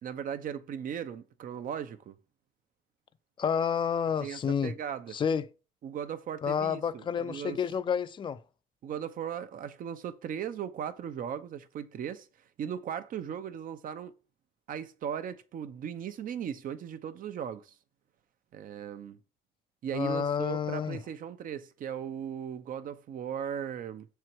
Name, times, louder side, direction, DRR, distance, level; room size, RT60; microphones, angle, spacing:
voice 1, 0.0-2.1 4.2-5.2 5.8-7.6 8.8-12.3 12.6-14.1 14.7-17.7 18.5-19.2 19.8-24.1, right 8 dB, 55° right, 0.9 m, -37 dB
voice 2, 3.4-4.7 5.1-5.5 6.4-8.4 19.9-21.0, left 7 dB, 30° left, 0.5 m, -29 dB
6.8 x 4.6 x 4.5 m
cardioid pair, 110°, 17 cm